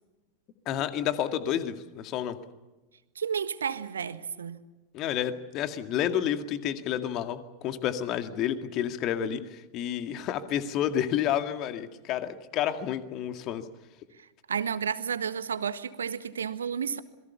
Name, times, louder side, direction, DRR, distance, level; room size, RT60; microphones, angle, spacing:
voice 1, 0.7-2.4 4.9-13.7, left 10 dB, 35° left, 9 dB, 2.1 m, -30 dB
voice 2, 3.1-4.6 14.5-17.0, right 7 dB, 70° right, 12 dB, 1.5 m, -31 dB
27.0 x 22.0 x 7.0 m, 1.1 s
figure-of-eight pair, 90°, 0 cm